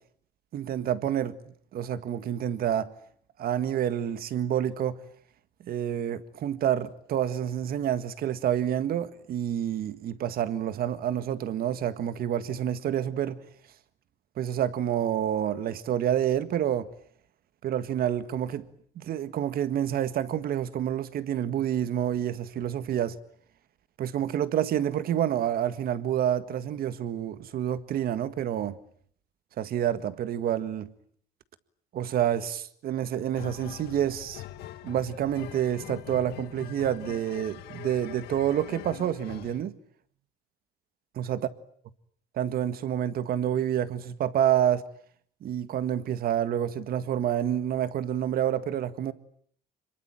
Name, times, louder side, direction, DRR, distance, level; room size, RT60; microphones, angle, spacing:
voice 1, 0.5-1.4 1.7-2.9 3.4-5.0 5.7-13.4 14.4-16.9 17.6-18.7 19.0-23.2 24.0-28.8 29.6-30.9 31.9-34.4 34.8-39.7 41.2-41.4 42.3-44.9 45.4-49.1, right 10 dB, 60° right, 1.8 m, -28 dB
sound 1, 33.3-39.6, left 13 dB, 80° left, 1.6 m, -43 dB
26.5 x 22.5 x 9.2 m
cardioid pair, 110°, 17 cm